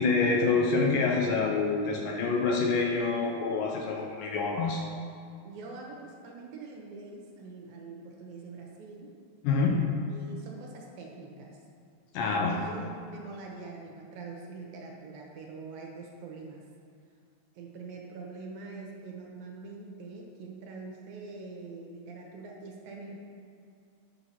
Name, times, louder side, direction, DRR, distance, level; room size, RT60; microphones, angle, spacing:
voice 1, 0.0-4.8 9.4-9.9 12.1-12.6, left 4 dB, 75° left, 0 dB, 2.1 m, -26 dB
voice 2, 5.4-9.1 10.1-11.6 12.2-16.6 17.5-23.2, right 3 dB, 75° right, -1 dB, 2.8 m, -44 dB
9.8 x 5.9 x 5.7 m, 2.5 s
omnidirectional pair, 4.5 m